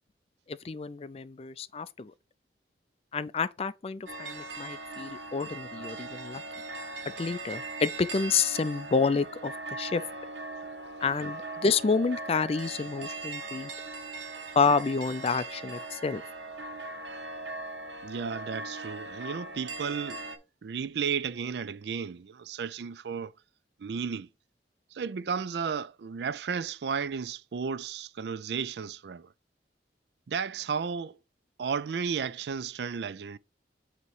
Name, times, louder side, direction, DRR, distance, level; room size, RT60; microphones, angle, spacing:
voice 1, 0.5-2.1 3.1-6.4 7.2-10.0 11.0-13.7 14.6-16.2, left 4 dB, 35° left, 0.4 m, -29 dB
sound 1, 4.1-20.4, right 2 dB, 85° right, 1.4 m, -40 dB
voice 2, 18.0-20.2 20.6-23.3 23.8-24.3 24.9-29.3 30.3-31.2 31.6-33.4, right 6 dB, 65° right, 0.4 m, -33 dB
8.2 x 3.0 x 4.6 m
head